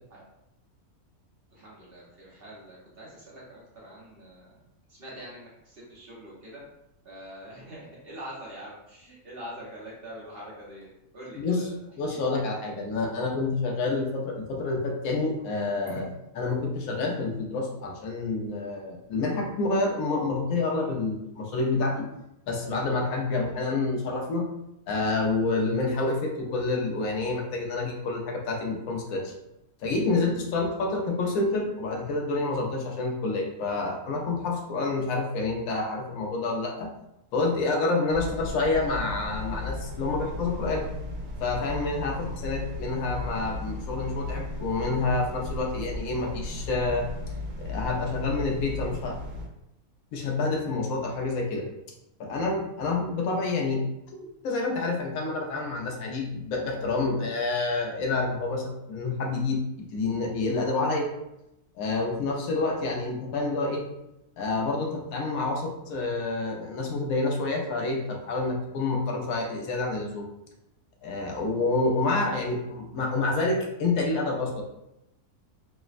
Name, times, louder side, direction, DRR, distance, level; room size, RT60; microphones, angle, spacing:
voice 1, 1.5-4.6 4.9-6.6 7.0-11.8 12.1-12.5, equal, 55° right, -6 dB, 0.7 m, -44 dB
voice 2, 12.0-22.1 22.5-24.5 24.9-29.3 29.8-36.9 37.3-40.9 41.4-47.1 47.6-49.2 50.1-51.7 52.2-53.8 54.4-61.1 61.8-63.8 64.4-70.3 71.0-74.6, left 3 dB, 75° left, 1 dB, 1.0 m, -28 dB
sound 1, 38.1-49.5, left 2 dB, 80° right, 1.1 m, -36 dB
3.3 x 2.0 x 2.4 m, 0.86 s
omnidirectional pair, 1.5 m